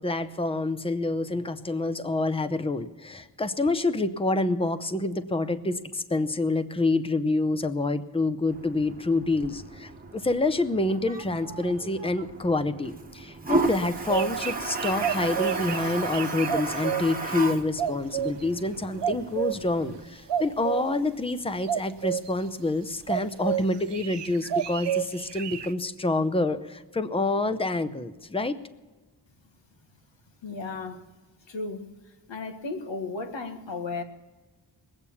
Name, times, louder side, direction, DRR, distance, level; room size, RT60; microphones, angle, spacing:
voice 1, 0.0-28.6, left 2 dB, 15° left, 12 dB, 0.6 m, -27 dB
Toilet flush, 8.5-20.0, right 3 dB, 20° right, 1.1 m, -34 dB
sound 1, 13.8-17.0 17.8-18.4 19.0-19.6 20.3-20.8 21.6-22.3 23.1-23.6 23.9-25.7, right 9 dB, 70° right, 0.7 m, -29 dB
voice 2, 30.4-31.0 31.5-34.0, left 3 dB, 90° left, 6 dB, 1.8 m, -35 dB
21.0 x 8.4 x 7.1 m, 1.2 s
wide cardioid pair, 165°, 44 cm